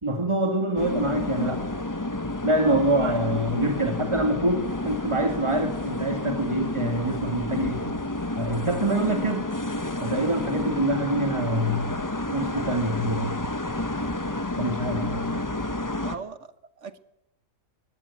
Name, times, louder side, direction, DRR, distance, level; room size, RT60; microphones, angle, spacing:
voice 1, 0.0-1.7 2.4-7.8 8.4-9.5 10.0-11.9 12.3-13.4 13.9-14.1 14.6-15.5, right 1 dB, 20° right, 6 dB, 1.8 m, -25 dB
sound 1, 0.8-16.2, left 1 dB, 15° left, 0.8 m, -30 dB
voice 2, 16.0-17.0, right 5 dB, 50° right, 14 dB, 1.3 m, -39 dB
20.0 x 15.5 x 9.6 m, 0.79 s
omnidirectional pair, 1.7 m